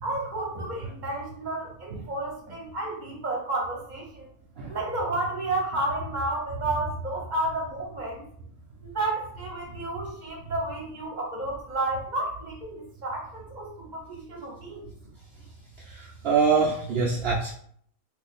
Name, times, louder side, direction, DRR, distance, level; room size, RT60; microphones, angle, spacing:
voice 1, 0.0-4.3 4.7-8.2 8.8-14.8, right 2 dB, 40° right, -2 dB, 0.7 m, -31 dB
voice 2, 15.9-17.5, right 5 dB, 75° right, -2 dB, 0.5 m, -25 dB
2.5 x 2.4 x 4.0 m, 0.63 s
omnidirectional pair, 1.6 m